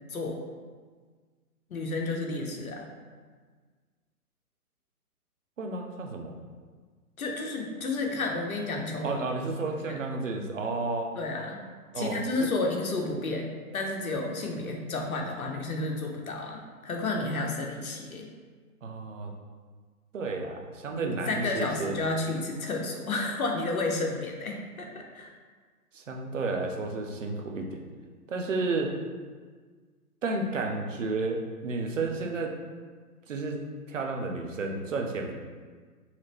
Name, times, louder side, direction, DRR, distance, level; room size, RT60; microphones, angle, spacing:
voice 1, 0.1-0.4 1.7-2.8 7.2-9.2 9.9-10.0 11.2-11.6 11.9-18.3 20.9-25.3, left 2 dB, 65° left, 1 dB, 0.8 m, -31 dB
voice 2, 5.6-6.3 9.0-11.1 11.9-12.2 18.8-19.3 20.1-22.0 25.9-27.8 28.3-28.9 30.2-32.5 33.3-33.6 33.9-35.3, right 3 dB, 55° right, 2 dB, 0.6 m, -32 dB
4.1 x 2.8 x 2.9 m, 1.5 s
figure-of-eight pair, 130°, 46 cm